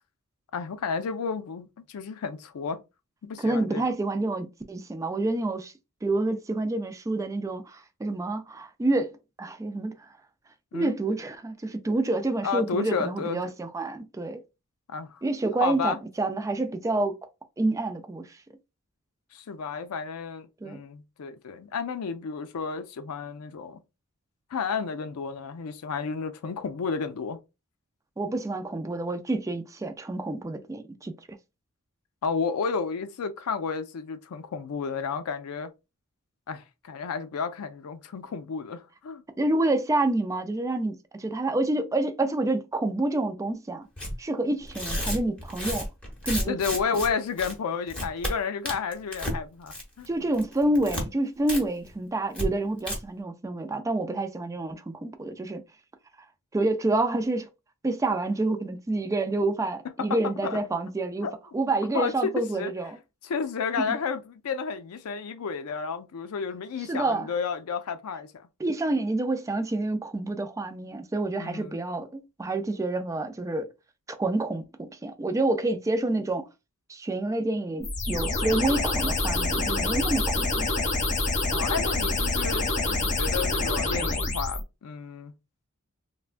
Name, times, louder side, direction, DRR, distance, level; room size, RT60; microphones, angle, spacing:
voice 1, 0.5-2.8 3.2-3.8 10.7-10.9 12.4-13.5 14.9-15.2 15.6-16.0 19.3-23.8 24.5-27.4 32.2-35.7 36.5-39.2 46.5-50.3 60.0-60.6 61.2-61.3 61.9-62.7 63.2-68.5 71.4-71.8 81.5-85.3, left 5 dB, 90° left, 0.4 m, -32 dB
voice 2, 3.4-5.7 6.0-9.9 10.7-14.4 15.2-17.1 17.6-18.3 20.6-20.8 28.2-31.1 39.4-43.9 44.2-45.9 46.3-46.6 50.1-55.6 56.5-57.5 57.8-61.3 61.5-63.0 63.8-63.9 66.9-67.3 68.6-73.7 74.1-76.5 76.9-80.6, right 2 dB, 15° right, 0.3 m, -28 dB
Tearing, 44.0-44.1 44.7-47.1 47.4-47.5 47.9-48.3 48.7-49.4 49.7-50.1 50.3-51.0 51.5-51.6 51.9-52.0 52.3-52.5 52.8-53.0, equal, 5° left, 0.8 m, -31 dB
sound 1, 77.8-84.6, left 2 dB, 35° left, 0.7 m, -26 dB
3.3 x 2.2 x 2.4 m
head